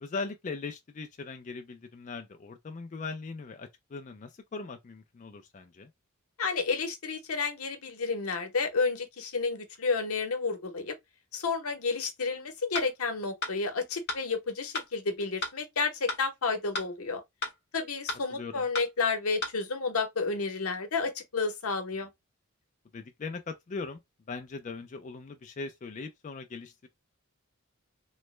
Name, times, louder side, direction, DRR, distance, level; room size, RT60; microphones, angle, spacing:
voice 1, 0.0-5.9 18.3-18.7 22.9-24.0 24.3-26.9, left 4 dB, 35° left, 0.4 m, -40 dB
voice 2, 6.4-10.9 11.3-17.2 17.7-22.1, left 4 dB, 85° left, 0.9 m, -31 dB
sound 1, 12.7-12.9 13.4-13.6 14.1-14.2 14.7-14.9 15.4-15.6 16.1-16.2 16.7-16.9 17.4-17.6 18.1-18.2 18.7-18.9 19.4-19.6, left 2 dB, 50° left, 0.8 m, -33 dB
3.1 x 2.1 x 3.1 m
head